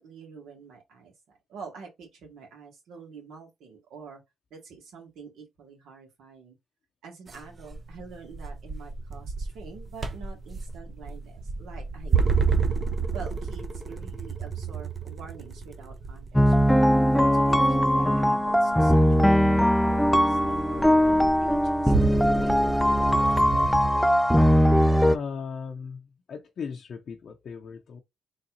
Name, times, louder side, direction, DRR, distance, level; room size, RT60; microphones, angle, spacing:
voice 1, 0.0-4.2 4.5-6.6 7.0-12.7 13.1-16.8 17.3-23.5, right 5 dB, 80° right, 2.0 m, -46 dB
sound 1, 7.3-23.9, right 5 dB, 35° right, 0.8 m, -32 dB
New growth, 16.3-25.2, equal, 5° left, 0.3 m, -20 dB
voice 2, 25.1-28.0, left 6 dB, 55° left, 0.6 m, -37 dB
4.1 x 3.2 x 2.6 m
cardioid pair, 90°, 0 cm